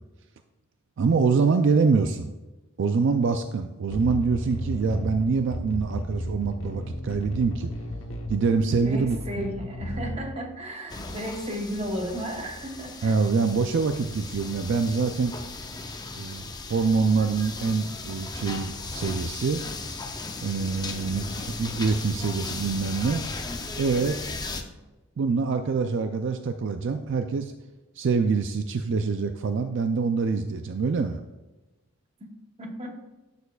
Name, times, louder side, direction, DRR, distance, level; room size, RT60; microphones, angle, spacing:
voice 1, 1.0-2.3 2.8-7.7 8.3-9.4 13.0-15.3 16.2-19.6 20.4-23.2 23.8-24.2 25.2-27.5 28.0-31.2, right 4 dB, 60° right, 7 dB, 0.4 m, -25 dB
sound 1, 3.9-10.3, equal, 80° left, 0.9 m, -34 dB
voice 2, 8.8-13.2 20.9-21.4 32.6-32.9, equal, 30° right, 2 dB, 1.1 m, -34 dB
sound 2, 10.9-24.6, left 3 dB, 20° left, 0.6 m, -36 dB
11.0 x 6.8 x 2.3 m, 1.1 s
head